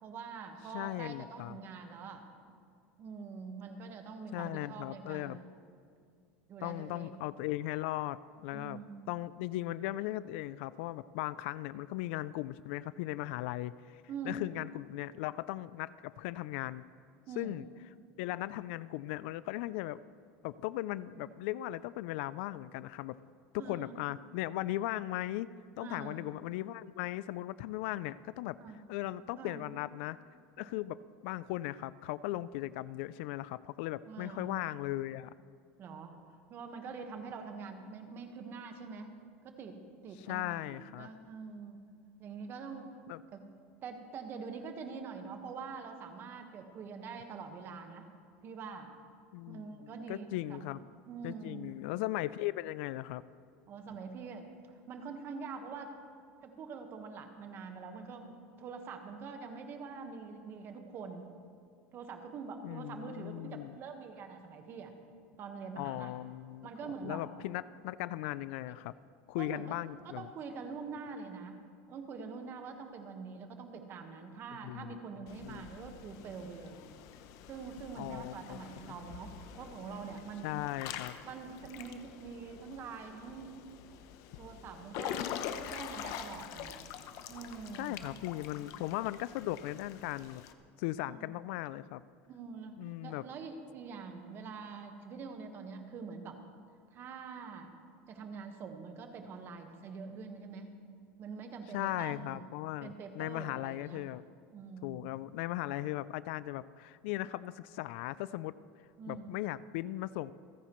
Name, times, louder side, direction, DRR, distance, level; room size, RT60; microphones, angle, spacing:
voice 1, 0.0-2.5 3.0-5.5 6.5-7.1 8.5-9.1 14.1-14.4 17.3-17.6 21.1-21.2 23.6-24.0 25.8-26.2 28.6-28.8 29.3-29.6 30.6-30.7 34.1-34.5 35.8-36.2 36.5-39.1 39.4-41.8 42.2-42.9 43.3-43.5 43.8-48.1 48.4-48.9 49.5-51.6 53.7-55.9 56.4-61.2 61.9-64.9 65.4-66.1 66.6-67.2 68.7-68.8 69.4-69.8 70.0-71.6 71.9-76.8 77.5-80.6 81.2-83.5 84.4-85.2 85.5-86.8 87.3-88.2 88.6-88.8 91.0-91.3 92.3-96.4 96.9-97.7 98.1-100.7 101.2-102.5 102.8-104.0 104.5-105.1 109.0-109.4, right 5 dB, 35° right, 5 dB, 1.4 m, -45 dB
voice 2, 0.7-1.6 4.3-5.4 6.6-8.8 9.1-16.8 17.4-17.7 18.2-20.0 20.4-23.2 23.5-25.5 25.8-28.6 28.9-30.2 30.6-35.3 40.2-41.1 43.1-43.2 49.3-50.8 51.2-53.2 62.6-63.8 65.8-66.7 67.0-68.9 69.3-70.3 74.6-75.6 78.0-78.6 80.4-81.2 87.8-90.4 90.8-92.0 92.8-93.3 101.7-104.2 104.8-108.6 109.1-110.3, left 16 dB, 70° left, 18 dB, 0.4 m, -38 dB
Water / Splash splatter / Drip, 75.3-90.5, left 9 dB, 55° left, 0.8 m, -45 dB
28.0 x 10.0 x 3.1 m, 2.3 s
supercardioid pair, 150°, 6 cm